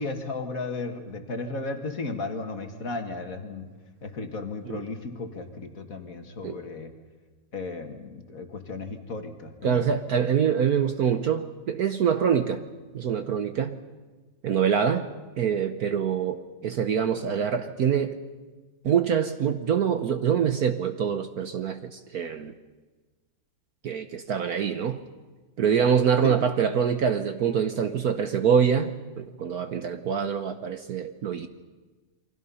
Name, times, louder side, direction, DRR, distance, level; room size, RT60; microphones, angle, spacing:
voice 1, 0.0-3.7 4.0-6.9 7.5-9.9 26.2-26.4, left 3 dB, 45° left, 5 dB, 2.1 m, -34 dB
voice 2, 9.6-12.6 12.9-13.8 14.4-15.1 15.4-18.2 18.8-22.5 23.8-25.0 25.6-31.5, right 7 dB, 60° right, 9 dB, 1.2 m, -25 dB
29.0 x 23.5 x 5.6 m, 1.3 s
omnidirectional pair, 2.1 m